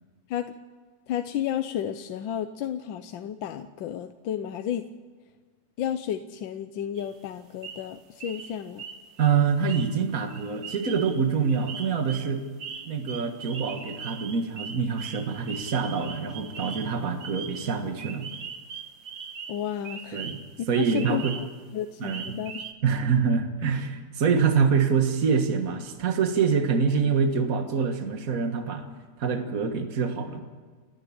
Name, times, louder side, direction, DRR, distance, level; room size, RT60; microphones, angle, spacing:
voice 1, 1.1-4.9 5.8-8.8 19.5-20.2 20.6-21.5 21.7-22.6, left 10 dB, 85° left, 9 dB, 1.5 m, -32 dB
sound 1, 7.0-7.1 7.6-7.9 8.2-20.6 20.9-21.7 22.1-22.7, right 6 dB, 75° right, 2.2 m, -40 dB
voice 2, 9.2-12.4 12.9-18.3 20.1-20.4 20.7-21.3 22.0-22.4 22.8-28.9 29.2-30.4, right 6 dB, 50° right, 6 dB, 2.0 m, -25 dB
30.0 x 10.5 x 8.7 m, 1.6 s
omnidirectional pair, 2.0 m